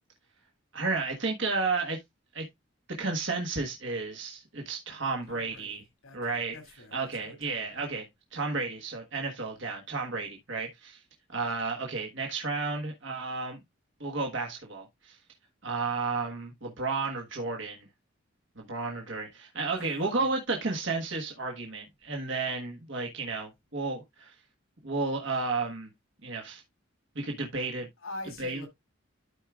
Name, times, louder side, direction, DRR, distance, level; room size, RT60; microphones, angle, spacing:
voice 1, 0.7-2.0 2.3-2.4 3.0-5.8 6.1-6.6 6.9-11.0 11.3-13.6 14.0-15.2 15.6-17.9 18.6-24.3 24.8-25.9 26.2-26.6 27.1-27.9 28.4-28.7, right 3 dB, 65° right, 1.5 m, -32 dB
voice 2, 5.3-7.8 19.7-20.2 28.0-28.7, left 2 dB, 85° left, 2.6 m, -45 dB
13.0 x 4.8 x 2.4 m
head